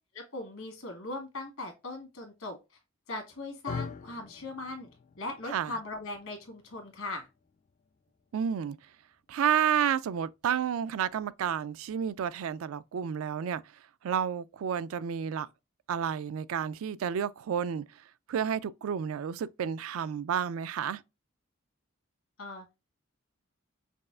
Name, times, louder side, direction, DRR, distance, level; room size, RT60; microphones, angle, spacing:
voice 1, 0.1-2.6 3.1-4.9 5.2-7.3 22.4-22.6, left 2 dB, 75° left, 1.6 m, -39 dB
sound 1, 3.7-11.9, left 5 dB, 35° left, 0.3 m, -47 dB
voice 2, 5.5-5.8 8.3-8.8 9.3-13.6 14.0-15.5 15.9-17.8 18.3-21.0, right 8 dB, 75° right, 0.3 m, -30 dB
5.2 x 2.4 x 2.3 m
head